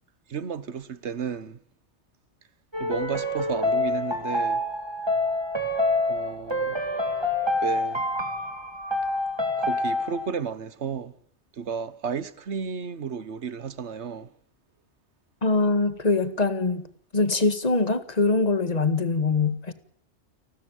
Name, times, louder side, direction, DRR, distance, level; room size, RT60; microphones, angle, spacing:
voice 1, 0.3-1.6 2.8-4.6 6.1-6.9 7.6-8.0 9.6-11.1 11.6-14.3, right 6 dB, 65° right, 1.4 m, -33 dB
sound 1, 2.7-10.3, left 2 dB, 20° right, 2.5 m, -27 dB
voice 2, 15.4-16.9 17.1-19.7, left 3 dB, 35° left, 1.9 m, -23 dB
29.5 x 12.5 x 9.2 m
omnidirectional pair, 1.2 m